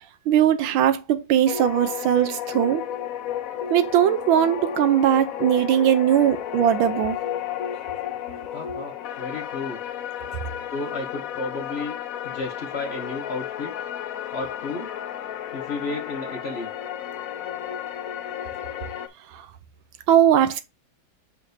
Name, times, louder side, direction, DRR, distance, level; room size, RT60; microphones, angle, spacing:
voice 1, 0.3-2.9 3.7-7.2 19.3-19.4 20.1-20.6, right 10 dB, 85° right, 1.5 m, -20 dB
sound 1, 1.5-19.1, left 10 dB, 75° left, 0.8 m, -33 dB
voice 2, 8.5-9.8 10.7-12.0 12.2-13.7 14.3-14.9 15.5-16.7, left 3 dB, 45° left, 0.9 m, -32 dB
6.7 x 5.4 x 2.7 m
omnidirectional pair, 2.1 m